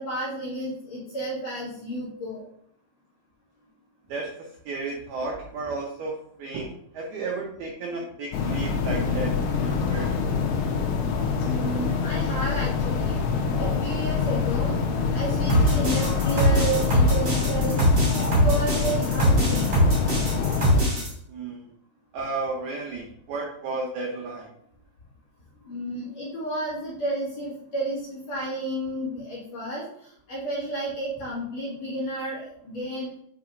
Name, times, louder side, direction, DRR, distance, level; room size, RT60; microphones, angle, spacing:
voice 1, 0.0-2.4 11.5-13.2 13.6-14.7 15.1-17.8 18.2-19.8 25.6-33.1, right 1 dB, 50° left, -7 dB, 2.3 m, -31 dB
voice 2, 4.1-10.2 21.3-21.7 22.1-24.5, right 3 dB, 85° right, -1 dB, 2.1 m, -33 dB
sound 1, 8.3-20.8, left 5 dB, 80° left, 3.3 m, -25 dB
sound 2, 15.5-21.1, right 1 dB, 35° right, 1.9 m, -22 dB
8.8 x 5.2 x 2.6 m, 0.71 s
omnidirectional pair, 5.7 m